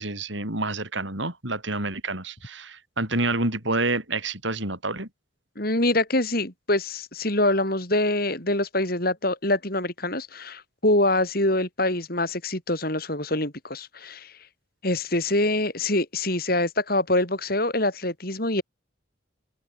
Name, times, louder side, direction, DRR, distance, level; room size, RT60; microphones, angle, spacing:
voice 1, 0.0-5.1, right 2 dB, 70° right, 7.8 m, -28 dB
voice 2, 5.6-14.3 14.8-18.6, left 1 dB, 50° left, 6.5 m, -25 dB
open air
head